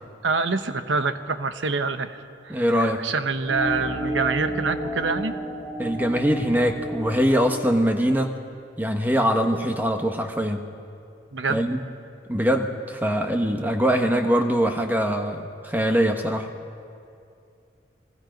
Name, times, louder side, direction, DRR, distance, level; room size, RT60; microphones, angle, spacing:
voice 1, 0.2-5.4 11.3-11.6, right 4 dB, 85° right, 9 dB, 1.0 m, -26 dB
voice 2, 2.5-3.0 5.8-8.3 8.8-10.6 11.5-11.8 12.3-16.5, equal, 10° right, 4 dB, 1.2 m, -22 dB
sound 1, 3.5-8.2, right 1 dB, 30° right, 7.6 m, -32 dB
29.5 x 20.5 x 5.3 m, 2.5 s
head